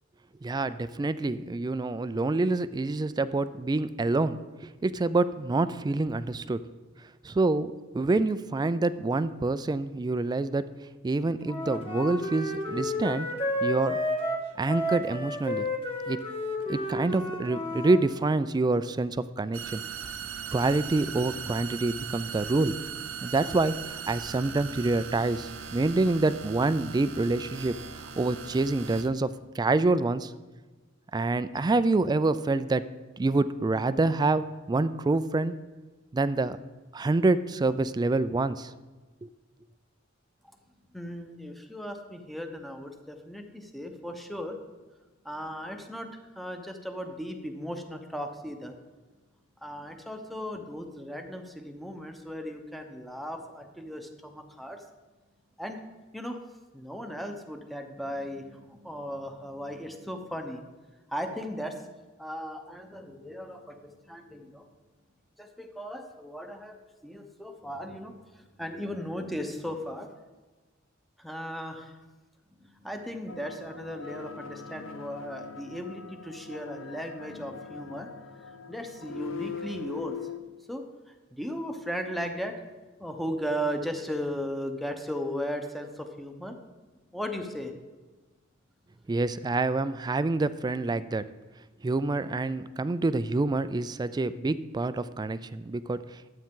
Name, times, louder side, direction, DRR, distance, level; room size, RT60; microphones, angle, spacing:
voice 1, 0.4-6.6 7.2-10.6 11.0-13.3 13.6-14.0 14.6-15.7 16.1-16.2 16.7-19.8 20.5-22.8 23.2-27.8 28.2-30.3 31.1-32.8 33.2-35.5 36.1-36.6 36.9-38.7 39.2-39.3 89.1-91.3 91.8-96.3, right 2 dB, 20° right, 14 dB, 0.3 m, -27 dB
Wind instrument woodwind instrument, 11.4-18.0, left 1 dB, 30° left, 1.7 m, -31 dB
sound 1, 19.5-29.1, right 7 dB, 70° right, 0.7 m, -39 dB
voice 2, 40.9-44.6 45.2-46.1 46.4-48.7 49.6-54.8 55.6-55.8 56.1-56.4 56.7-60.6 61.1-61.8 62.2-64.7 65.4-70.1 71.2-71.9 72.6-80.2 80.7-82.6 83.0-86.6 87.1-87.7, equal, ahead, 4 dB, 0.8 m, -37 dB
sound 2, 73.3-80.4, left 6 dB, 75° left, 0.6 m, -42 dB
12.0 x 8.5 x 3.7 m, 1.2 s
head